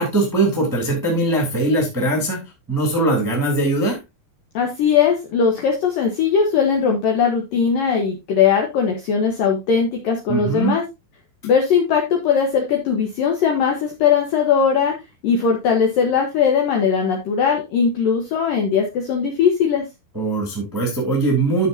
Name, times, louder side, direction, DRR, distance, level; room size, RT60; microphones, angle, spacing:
voice 1, 0.0-2.4 2.7-4.0 10.3-10.7 20.1-21.7, right 2 dB, 5° right, -1 dB, 1.7 m, -20 dB
voice 2, 4.5-10.8 11.4-14.9 15.2-19.8, left 6 dB, 70° left, 2 dB, 2.2 m, -19 dB
12.5 x 6.2 x 2.7 m, 0.23 s
omnidirectional pair, 5.4 m